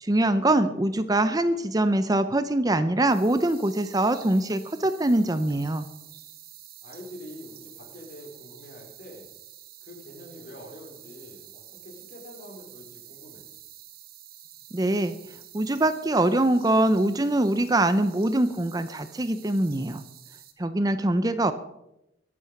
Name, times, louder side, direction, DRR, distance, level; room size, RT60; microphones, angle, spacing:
voice 1, 0.0-5.9 14.7-15.2 15.5-20.0 20.6-21.5, right 1 dB, 20° right, 11 dB, 0.6 m, -23 dB
voice 2, 0.8-1.2 6.8-9.3 9.8-13.5, left 1 dB, 45° left, 1 dB, 4.5 m, -45 dB
sound 1, 3.1-20.5, right 11 dB, 50° right, 1.8 m, -49 dB
22.5 x 8.6 x 5.9 m, 0.88 s
head